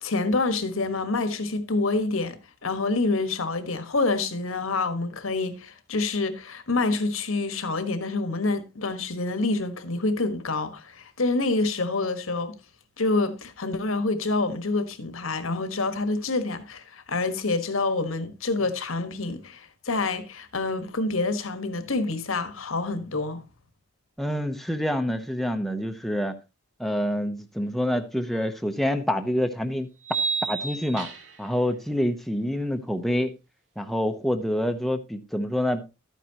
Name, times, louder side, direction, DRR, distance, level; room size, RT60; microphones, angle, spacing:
voice 1, 0.0-12.6 13.0-23.4, left 3 dB, 80° left, 1.4 m, -27 dB
voice 2, 24.2-26.3 26.8-29.9 30.5-31.1 31.4-33.3 33.8-35.9, equal, ahead, 0.7 m, -27 dB
sound 1, 28.4-28.5 30.0-31.5, right 5 dB, 60° right, 2.3 m, -30 dB
12.5 x 9.2 x 2.9 m
head